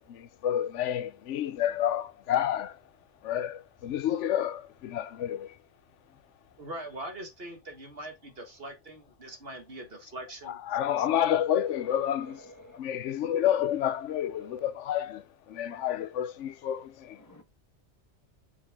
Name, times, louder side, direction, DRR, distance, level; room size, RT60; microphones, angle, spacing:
voice 1, 0.1-2.8 3.2-5.5 10.5-12.5 12.7-15.2 15.5-17.2, left 10 dB, 90° left, 1.0 m, -29 dB
voice 2, 6.6-10.6, right 1 dB, 55° right, 2.0 m, -42 dB
voice 3, 11.7-12.8 14.2-14.7 17.2-17.4, equal, 15° left, 1.4 m, -51 dB
7.1 x 5.2 x 3.7 m
omnidirectional pair, 1.2 m